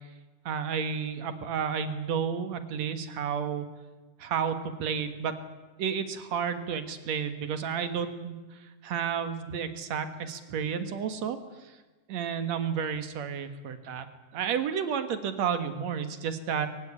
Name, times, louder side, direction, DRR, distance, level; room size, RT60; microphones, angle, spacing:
voice 1, 0.5-3.7 4.2-5.4 5.8-11.8 12.1-14.1 14.3-16.7, right 7 dB, 65° right, 9 dB, 2.7 m, -31 dB
23.5 x 16.0 x 10.0 m, 1.2 s
omnidirectional pair, 3.5 m